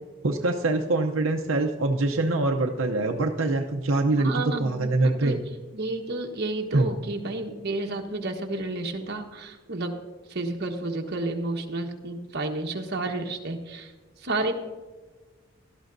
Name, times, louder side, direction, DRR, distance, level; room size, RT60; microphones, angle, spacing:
voice 1, 0.2-5.4 6.7-6.9, right 2 dB, 85° right, 3 dB, 0.7 m, -24 dB
voice 2, 4.2-5.4 5.7-9.9 10.3-13.9 14.2-14.5, right 2 dB, 55° right, 2 dB, 1.2 m, -31 dB
17.5 x 12.5 x 2.6 m, 1.3 s
head